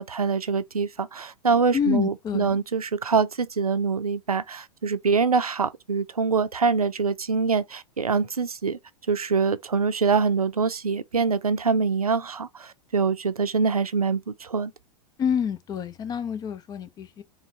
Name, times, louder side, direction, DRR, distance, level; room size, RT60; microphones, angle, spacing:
voice 1, 0.0-8.8 9.1-14.7, right 5 dB, 80° right, 0.5 m, -24 dB
voice 2, 1.7-2.6 15.2-17.2, left 7 dB, 20° left, 0.5 m, -27 dB
3.9 x 2.6 x 3.2 m
figure-of-eight pair, 95°, 19 cm